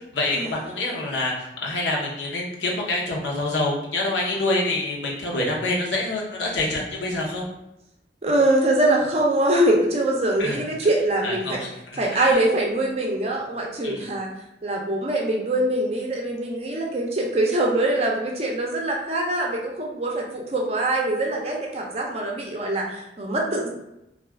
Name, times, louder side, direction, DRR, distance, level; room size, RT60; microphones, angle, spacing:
voice 1, 0.1-7.5 10.4-10.6 11.2-12.4 13.8-14.0, left 2 dB, 85° left, -2 dB, 0.7 m, -26 dB
voice 2, 8.2-11.6 12.0-14.3 14.6-23.7, right 1 dB, 35° right, 0 dB, 0.5 m, -23 dB
2.4 x 2.3 x 3.3 m, 0.86 s
head